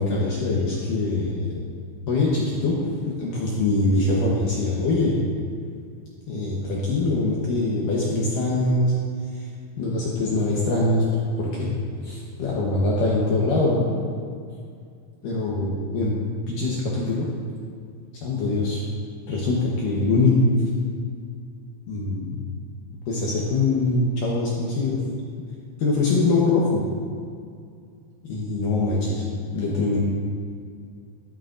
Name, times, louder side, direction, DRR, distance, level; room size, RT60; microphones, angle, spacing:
voice 1, 0.0-1.5 2.1-2.8 3.1-5.2 6.3-8.9 9.8-11.0 11.4-11.7 12.0-14.0 15.2-16.2 16.5-17.3 18.2-18.8 19.3-20.5 21.9-22.4 23.1-25.0 25.8-26.8 28.2-29.2 29.5-30.0, left 2 dB, 75° left, -5 dB, 2.0 m, -23 dB
12.5 x 11.5 x 2.6 m, 2.2 s
omnidirectional pair, 5.4 m